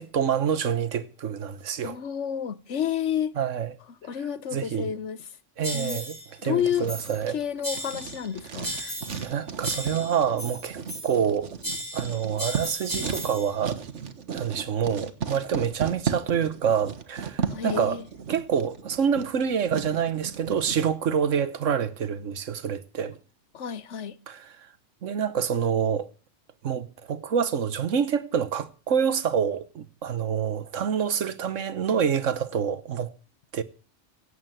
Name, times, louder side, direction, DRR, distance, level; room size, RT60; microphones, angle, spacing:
voice 1, 0.0-2.0 3.4-3.7 4.1-4.2 4.5-4.9 5.6-7.4 8.8-8.9 9.2-11.5 11.9-13.8 14.3-18.0 18.3-23.2 24.3-24.6 25.0-26.1 26.6-33.1 33.5-33.6, right 7 dB, 85° right, 1.4 m, -27 dB
voice 2, 1.8-3.4 4.0-5.2 5.7-6.0 6.4-6.9 7.3-9.2 17.5-18.0 23.5-24.2, left 9 dB, 70° left, 1.2 m, -30 dB
sound 1, 5.6-6.3 6.9-7.3 7.6-8.3 8.6-9.3 9.6-11.3 11.6-13.5, equal, 15° left, 7.7 m, -35 dB
Writing, 6.6-20.9, right 6 dB, 70° right, 1.6 m, -35 dB
16.5 x 8.0 x 7.9 m
omnidirectional pair, 1.3 m